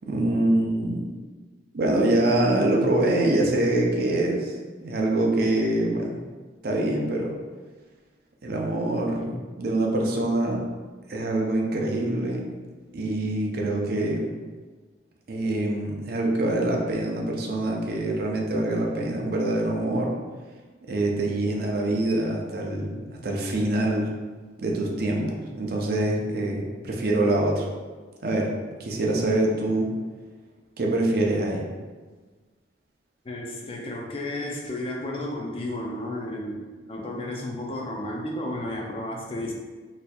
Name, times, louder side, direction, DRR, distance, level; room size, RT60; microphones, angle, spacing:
voice 1, 0.0-1.0 1.7-4.5 4.8-6.1 6.6-7.3 8.4-10.6 11.1-12.4 12.9-14.3 15.3-20.1 20.9-24.1 24.6-27.7 28.2-28.5 28.8-29.9 30.8-31.6, right 1 dB, 55° right, 0 dB, 0.5 m, -25 dB
voice 2, 33.2-39.5, left 1 dB, 30° left, 0 dB, 0.4 m, -33 dB
4.1 x 2.6 x 2.3 m, 1.4 s
head